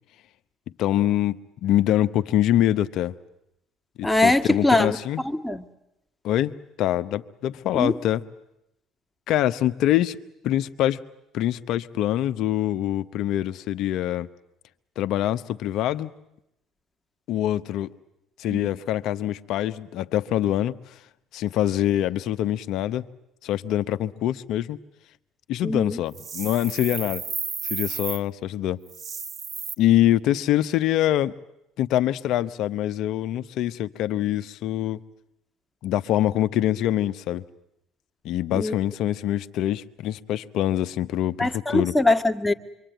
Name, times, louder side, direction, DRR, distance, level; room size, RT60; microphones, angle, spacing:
voice 1, 0.8-3.2 4.0-5.2 6.2-8.2 9.3-10.2 10.4-11.0 11.3-14.3 15.0-16.1 17.3-17.9 18.4-20.8 21.3-23.1 23.4-24.8 25.5-27.2 27.6-28.8 29.8-31.3 31.8-35.0 35.8-37.4 38.2-42.0, left 12 dB, 70° left, 12 dB, 0.9 m, -24 dB
voice 2, 4.0-5.0 5.4-5.6 7.7-7.9 18.5-18.7 25.6-26.0 38.5-38.7 41.4-42.5, left 2 dB, 10° left, 6 dB, 1.7 m, -22 dB
sound 1, 26.1-28.2 28.9-29.7, right 6 dB, 45° right, 1.4 m, -33 dB
26.0 x 24.5 x 9.2 m, 0.85 s
hypercardioid pair, 65°, 0 cm